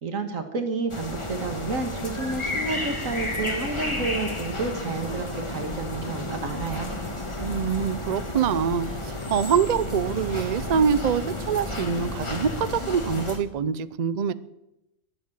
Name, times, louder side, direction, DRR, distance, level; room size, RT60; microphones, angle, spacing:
voice 1, 0.0-6.9, right 3 dB, 60° right, 6 dB, 2.1 m, -30 dB
sound 1, 0.9-13.4, left 1 dB, 20° left, 1.6 m, -32 dB
sound 2, 6.4-13.4, equal, 10° right, 1.5 m, -46 dB
voice 2, 7.4-14.3, right 7 dB, 80° right, 16 dB, 0.3 m, -25 dB
21.5 x 7.5 x 7.5 m, 0.93 s
omnidirectional pair, 1.6 m